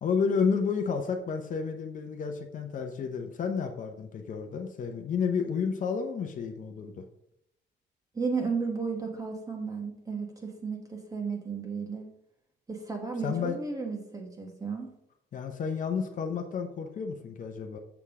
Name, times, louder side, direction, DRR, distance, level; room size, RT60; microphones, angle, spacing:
voice 1, 0.0-7.0 13.2-13.6 15.3-17.8, left 6 dB, 45° left, 5 dB, 0.7 m, -31 dB
voice 2, 8.1-12.1 12.7-14.9, right 5 dB, 15° right, 2 dB, 1.1 m, -34 dB
7.0 x 6.6 x 3.6 m, 0.78 s
cardioid pair, 160°, 19 cm